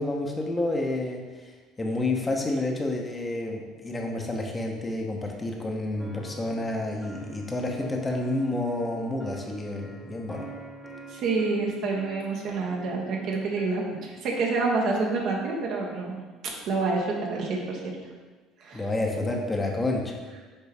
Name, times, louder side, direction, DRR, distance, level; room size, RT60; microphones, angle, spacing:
voice 1, 0.0-1.5 1.8-10.5 18.7-20.2, left 2 dB, 20° left, 1 dB, 1.1 m, -29 dB
sound 1, 6.0-13.6, right 4 dB, 5° left, 1.2 m, -46 dB
voice 2, 11.1-16.2 16.7-18.0 18.6-18.9, right 3 dB, 55° right, -1 dB, 1.2 m, -28 dB
6.8 x 4.6 x 3.5 m, 1.3 s
figure-of-eight pair, 60°, 0 cm